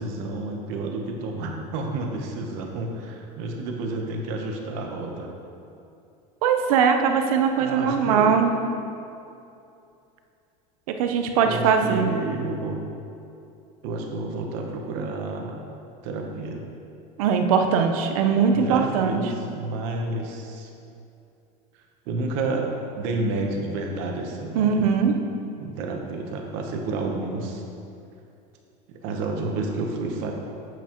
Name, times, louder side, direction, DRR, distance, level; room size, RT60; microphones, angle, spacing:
voice 1, 0.0-5.3 7.6-8.4 11.4-12.9 13.8-15.5 16.0-16.7 18.5-20.7 22.1-22.7 23.0-24.9 25.6-27.6 28.9-30.3, right 2 dB, 55° right, 2 dB, 1.0 m, -30 dB
voice 2, 6.4-8.6 11.0-12.1 17.2-19.2 24.5-25.1, right 6 dB, 85° right, 5 dB, 0.7 m, -21 dB
7.9 x 7.1 x 3.0 m, 2.7 s
cardioid pair, 170°, 18 cm